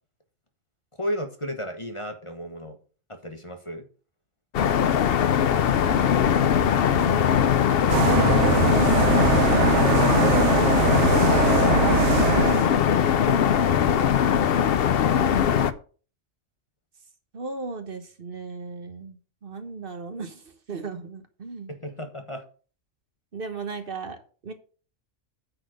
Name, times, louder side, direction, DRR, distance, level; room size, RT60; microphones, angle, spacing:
voice 1, 1.0-2.8 3.1-3.9 21.7-22.4, equal, 25° left, 5 dB, 1.1 m, -36 dB
sound 1, 4.5-15.7, left 8 dB, 60° left, 0.8 m, -20 dB
voice 2, 5.8-6.2 6.5-7.3 17.3-21.7 23.3-24.2 24.4-24.5, right 4 dB, 50° right, 8 dB, 1.3 m, -37 dB
sound 2, 7.9-12.7, right 10 dB, 70° right, 0.9 m, -22 dB
9.4 x 4.3 x 6.4 m, 0.39 s
omnidirectional pair, 1.3 m